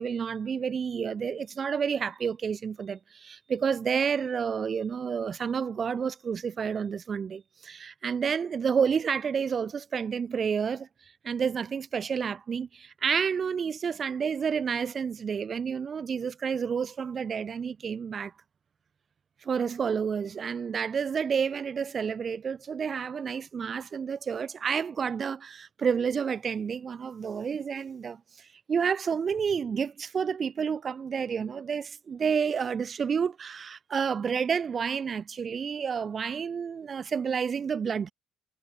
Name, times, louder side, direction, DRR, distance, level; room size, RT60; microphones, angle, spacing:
voice 1, 0.0-10.9 11.2-18.3 19.4-38.1, right 6 dB, 45° right, 6.5 m, -30 dB
supercardioid pair, 75°, 0 cm